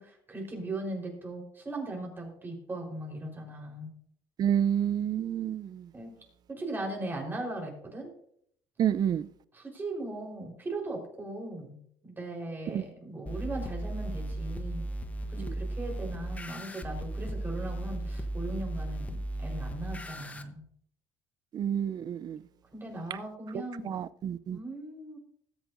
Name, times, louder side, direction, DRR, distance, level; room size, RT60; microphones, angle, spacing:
voice 1, 0.0-3.9 5.9-6.1 6.5-8.1 9.5-11.8 12.0-14.9 15.3-20.6 22.7-23.9 24.5-25.2, right 2 dB, 20° right, 4.2 m, -38 dB
voice 2, 4.4-5.7 8.8-9.3 12.7-12.8 15.4-15.5 21.5-22.4 23.9-24.6, right 9 dB, 45° right, 0.5 m, -29 dB
sound 1, 13.2-20.4, right 1 dB, 15° left, 1.0 m, -36 dB
20.0 x 8.2 x 2.6 m
cardioid pair, 105°, 9 cm